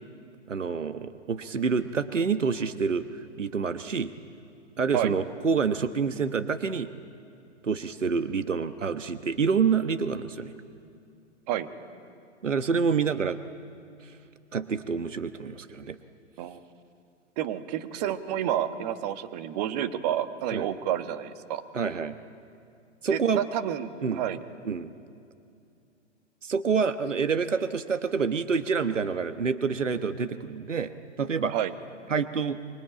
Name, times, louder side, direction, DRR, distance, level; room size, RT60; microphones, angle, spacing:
voice 1, 0.5-4.1 4.8-6.9 7.6-10.5 12.4-13.4 14.0-14.1 14.5-16.0 20.5-20.7 21.7-22.2 23.0-23.4 24.0-24.2 24.6-24.9 26.4-30.9 31.2-31.5 32.1-32.6, right 5 dB, 80° right, 10 dB, 1.2 m, -27 dB
voice 2, 17.4-21.6 23.1-24.4 31.5-31.7, right 11 dB, 35° right, 9 dB, 1.6 m, -30 dB
25.0 x 23.0 x 8.8 m, 2.6 s
figure-of-eight pair, 125°, 37 cm